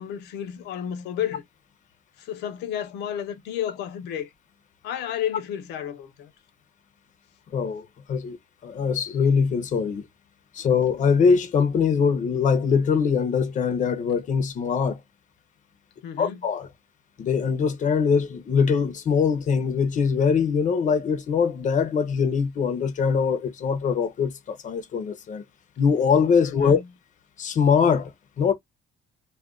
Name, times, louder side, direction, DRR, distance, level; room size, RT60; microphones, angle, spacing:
voice 1, 0.0-1.4 2.2-4.3 4.8-6.3 16.0-16.5 26.4-26.9, left 10 dB, 80° left, 0.8 m, -32 dB
voice 2, 7.5-8.4 8.6-10.0 10.5-15.0 16.2-16.7 17.2-25.4 25.8-26.8 27.4-28.1 28.4-28.5, left 6 dB, 50° left, 0.8 m, -22 dB
2.4 x 2.4 x 3.6 m
cardioid pair, 110°, 17 cm